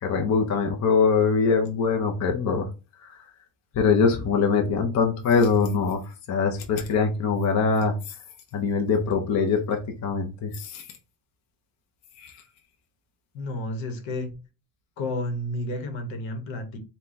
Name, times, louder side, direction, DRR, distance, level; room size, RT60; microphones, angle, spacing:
voice 1, 0.0-2.7 3.0-3.2 3.7-8.2 8.5-10.9 12.2-12.4, left 5 dB, 35° left, 0.7 m, -23 dB
voice 2, 13.3-14.3 15.0-16.8, left 1 dB, 65° left, 1.2 m, -31 dB
4.3 x 2.3 x 3.9 m
cardioid pair, 145°, 49 cm